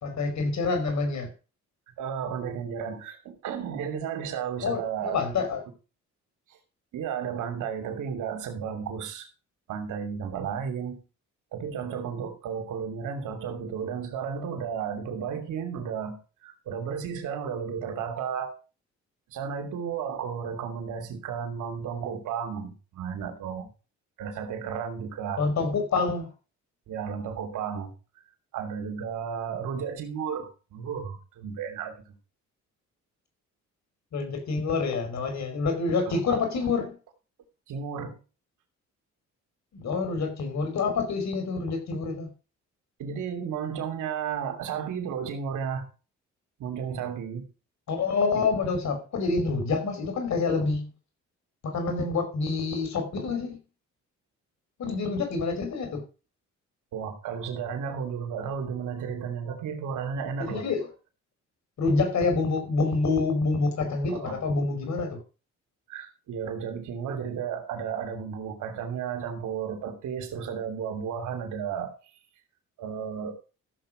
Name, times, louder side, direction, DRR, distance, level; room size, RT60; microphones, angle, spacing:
voice 1, 0.0-1.3 4.6-5.6 25.4-26.3 34.1-37.0 39.7-42.3 47.9-50.9 51.6-53.6 54.8-56.0 60.4-60.9 61.8-65.2, left 4 dB, 65° left, 5.2 m, -27 dB
voice 2, 2.0-5.2 6.9-9.3 9.7-11.0 11.5-18.6 19.3-23.7 24.2-25.4 26.9-27.9 28.5-31.9 36.1-36.4 37.7-38.2 43.0-45.9 46.6-47.5 56.9-60.7 64.1-64.3 65.9-71.9 72.8-73.3, right 7 dB, 80° right, 2.9 m, -33 dB
14.0 x 7.6 x 5.0 m
cardioid pair, 90°, 30 cm